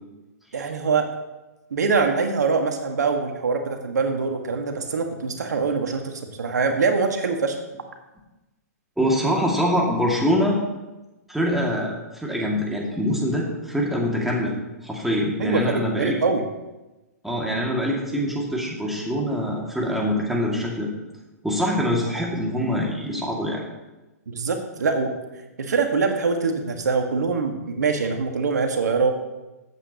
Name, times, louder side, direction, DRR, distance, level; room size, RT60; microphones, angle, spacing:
voice 1, 0.5-1.1 1.7-7.6 15.4-16.4 24.3-25.1 25.6-29.1, right 4 dB, 80° right, 4 dB, 1.5 m, -23 dB
voice 2, 9.0-10.6 11.3-14.5 14.8-16.2 17.2-20.9 21.4-23.6, equal, ahead, -3 dB, 2.1 m, -24 dB
14.5 x 8.3 x 2.9 m, 1.1 s
hypercardioid pair, 130°, 9 cm